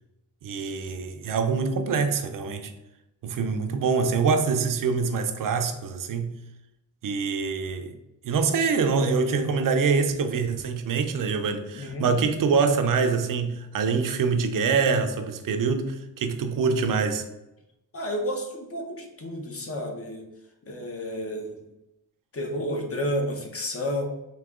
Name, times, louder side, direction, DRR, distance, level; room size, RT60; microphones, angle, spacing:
voice 1, 0.4-2.7 3.2-6.4 7.0-8.0 8.2-17.2, right 5 dB, 50° right, 7 dB, 0.6 m, -25 dB
voice 2, 11.7-12.1 17.9-20.2 20.6-21.6 22.3-24.0, equal, 35° left, 2 dB, 0.9 m, -31 dB
3.8 x 2.8 x 3.6 m, 0.91 s
cardioid pair, 95°, 41 cm